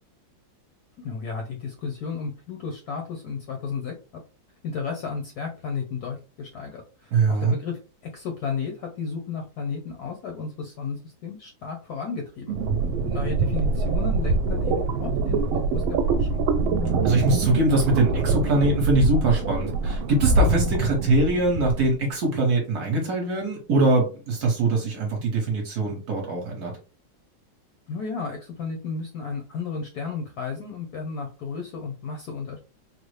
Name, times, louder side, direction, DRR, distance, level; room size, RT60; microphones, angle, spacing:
voice 1, 1.0-3.9 4.6-12.6 13.0-16.4 27.9-32.6, left 5 dB, 70° left, 2 dB, 0.9 m, -33 dB
voice 2, 7.1-7.6 17.0-26.8, right 2 dB, 60° right, 0 dB, 1.3 m, -22 dB
sound 1, 12.5-21.9, right 3 dB, 80° right, 1.3 m, -24 dB
3.8 x 2.0 x 3.2 m, 0.33 s
omnidirectional pair, 2.2 m